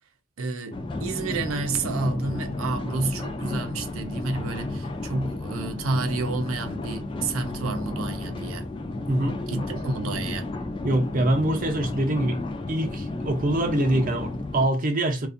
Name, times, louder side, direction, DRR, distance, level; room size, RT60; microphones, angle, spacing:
voice 1, 0.4-8.7 9.5-10.5, right 3 dB, 85° right, 0.5 m, -30 dB
sound 1, 0.7-14.7, left 2 dB, 25° left, 0.3 m, -32 dB
voice 2, 9.1-9.4 10.8-12.4 12.7-15.3, right 1 dB, 40° right, 0.6 m, -24 dB
2.5 x 2.3 x 2.5 m
head